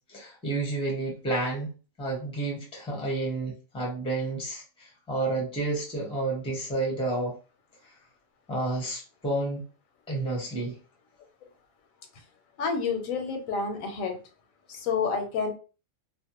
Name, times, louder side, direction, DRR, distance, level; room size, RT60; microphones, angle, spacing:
voice 1, 0.1-1.7 2.0-7.4 8.5-9.6 10.1-10.8, right 2 dB, 5° left, -1 dB, 0.6 m, -30 dB
voice 2, 12.6-14.2 14.7-15.5, left 5 dB, 85° left, 5 dB, 1.1 m, -29 dB
2.6 x 2.1 x 2.8 m, 0.34 s
omnidirectional pair, 1.4 m